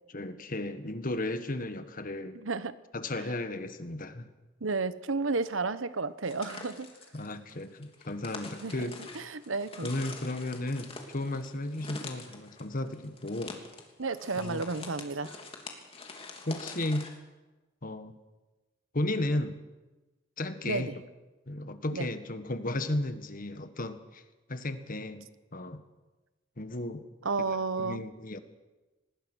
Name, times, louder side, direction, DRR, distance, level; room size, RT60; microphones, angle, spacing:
voice 1, 0.1-2.4 2.9-4.3 7.1-9.0 9.8-13.6 14.4-14.6 16.4-17.1 17.8-18.1 18.9-19.6 20.4-20.9 21.5-24.2 24.5-25.8 26.6-27.1 27.5-28.4, left 1 dB, 45° left, 10 dB, 1.6 m, -34 dB
voice 2, 2.3-2.8 3.2-3.3 4.6-6.9 8.6-9.9 14.0-15.4 20.6-21.0 21.9-22.1 27.2-28.0, right 3 dB, 85° right, 13 dB, 1.1 m, -32 dB
sound 1, 6.2-17.2, left 3 dB, 30° left, 3.0 m, -45 dB
25.0 x 20.0 x 6.4 m, 1.2 s
head